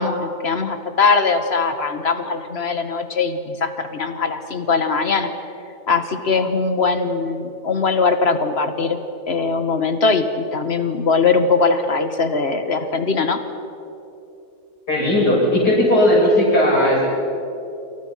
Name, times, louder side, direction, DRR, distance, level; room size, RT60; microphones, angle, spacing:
voice 1, 0.0-5.3 5.9-9.0 9.3-13.4, left 4 dB, 40° left, 8 dB, 2.0 m, -20 dB
voice 2, 14.9-17.1, left 1 dB, 70° left, -4 dB, 8.6 m, -16 dB
29.5 x 28.0 x 5.9 m, 2.8 s
omnidirectional pair, 1.8 m